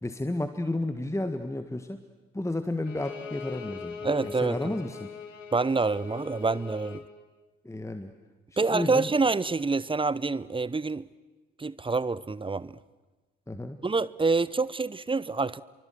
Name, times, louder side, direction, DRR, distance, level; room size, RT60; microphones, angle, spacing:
voice 1, 0.0-2.0 2.3-5.1 7.6-8.1 8.7-9.1 13.5-13.8, left 1 dB, 10° left, 1.7 m, -32 dB
Bowed string instrument, 2.8-7.1, left 5 dB, 80° left, 1.5 m, -41 dB
voice 2, 4.0-4.7 5.5-7.0 8.6-11.0 11.6-12.8 13.8-15.6, right 3 dB, 15° right, 0.8 m, -27 dB
29.0 x 24.0 x 7.9 m
figure-of-eight pair, 40°, 38 cm